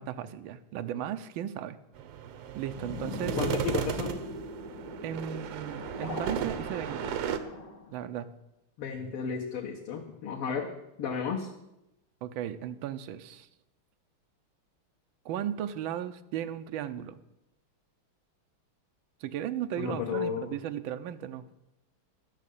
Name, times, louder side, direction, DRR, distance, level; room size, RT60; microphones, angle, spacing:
voice 1, 0.0-1.8 2.5-3.4 5.0-7.1 7.9-8.3 12.2-13.5 15.2-17.2 19.2-21.4, right 10 dB, 70° right, 10 dB, 1.4 m, -36 dB
sound 1, 2.0-7.4, right 8 dB, 90° right, 1.8 m, -35 dB
sound 2, 2.7-7.9, left 2 dB, 40° left, 1.7 m, -41 dB
voice 2, 3.4-4.2 8.8-10.7 11.0-11.5 19.8-20.5, left 6 dB, 80° left, -2 dB, 2.1 m, -33 dB
12.5 x 6.5 x 8.3 m, 0.91 s
omnidirectional pair, 2.4 m